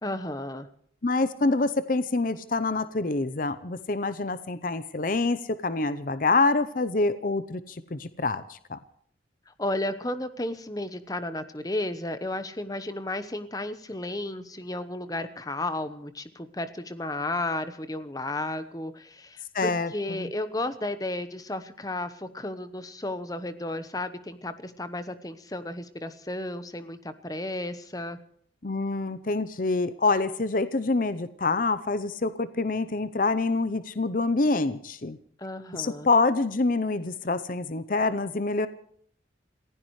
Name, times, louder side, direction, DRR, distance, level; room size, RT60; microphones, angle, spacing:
voice 1, 0.0-0.7 9.5-28.2 35.4-36.1, left 1 dB, 20° left, 11 dB, 1.0 m, -33 dB
voice 2, 1.0-8.8 19.5-20.3 28.6-35.2 35.7-38.7, left 3 dB, 45° left, 13 dB, 0.7 m, -26 dB
28.5 x 15.5 x 3.2 m, 0.63 s
head